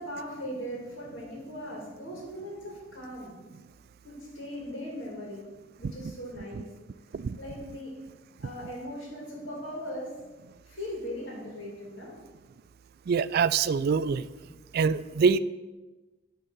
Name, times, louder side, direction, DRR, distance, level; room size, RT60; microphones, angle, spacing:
voice 1, 0.0-3.3 4.0-5.4 5.8-6.7 7.4-7.9 8.4-10.1 10.6-12.1, equal, 80° left, -3 dB, 2.5 m, -39 dB
voice 2, 13.1-14.2 14.7-15.4, right 5 dB, 55° right, 16 dB, 0.3 m, -24 dB
9.9 x 3.7 x 6.7 m, 1.2 s
head